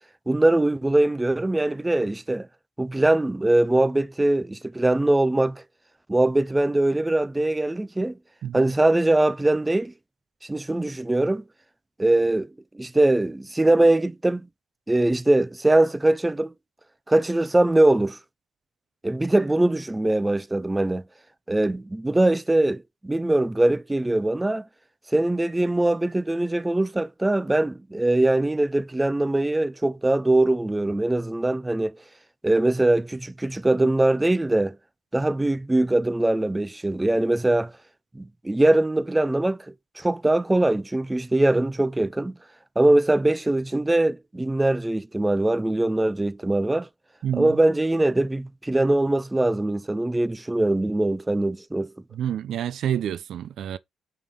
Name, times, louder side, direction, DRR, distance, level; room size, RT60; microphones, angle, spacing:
voice 1, 0.3-2.5 2.8-5.6 6.1-8.2 8.5-9.9 10.5-11.4 12.0-12.5 12.7-14.5 14.9-16.5 17.1-18.2 19.0-21.0 21.5-24.6 25.1-32.0 32.4-34.8 35.1-37.7 38.2-39.6 40.0-42.3 42.8-46.9 47.3-51.9, right 2 dB, 10° right, 0.5 m, -22 dB
voice 2, 47.2-47.6 52.1-53.8, right 10 dB, 70° right, 0.5 m, -28 dB
5.6 x 4.8 x 5.6 m
cardioid pair, 90°, 0 cm